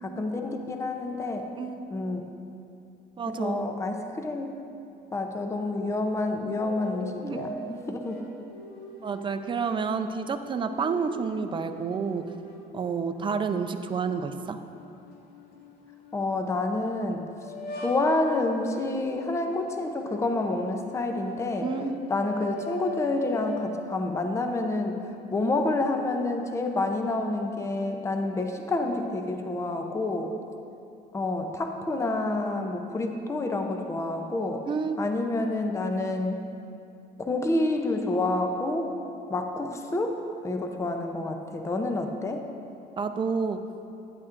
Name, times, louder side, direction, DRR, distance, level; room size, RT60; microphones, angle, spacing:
voice 1, 0.0-1.5 1.9-2.3 3.3-4.5 5.1-8.2 16.1-17.3 17.8-21.7 22.1-25.0 25.3-30.3 31.1-34.6 35.0-36.4 37.2-38.9 39.3-42.4, left 2 dB, 15° left, 4 dB, 0.6 m, -28 dB
voice 2, 1.6-1.9 3.2-3.7 7.2-7.5 9.0-12.2 12.7-14.6 21.6-22.0 34.7-35.1 39.7-39.8 43.0-43.6, right 5 dB, 30° right, 8 dB, 0.5 m, -29 dB
sound 1, 6.6-9.9 10.4-12.7 13.2-16.3 17.4-20.7 21.2-23.7, left 2 dB, 75° left, 1.3 m, -41 dB
11.5 x 9.7 x 2.5 m, 2.6 s
cardioid pair, 110°, 17 cm